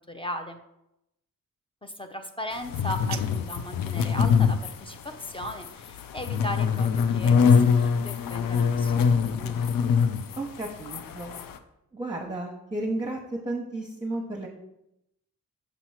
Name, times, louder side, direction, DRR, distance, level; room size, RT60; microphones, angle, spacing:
voice 1, 0.1-0.6 1.8-8.9 9.2-9.6, equal, 15° left, 6 dB, 0.6 m, -37 dB
sound 1, 2.6-11.6, left 6 dB, 90° left, 0.5 m, -24 dB
sound 2, 2.7-3.7, right 10 dB, 55° right, 0.4 m, -42 dB
voice 2, 10.4-11.3 11.9-14.5, right 2 dB, 15° right, -1 dB, 1.0 m, -33 dB
6.7 x 3.0 x 5.6 m, 0.84 s
cardioid pair, 80°, 33 cm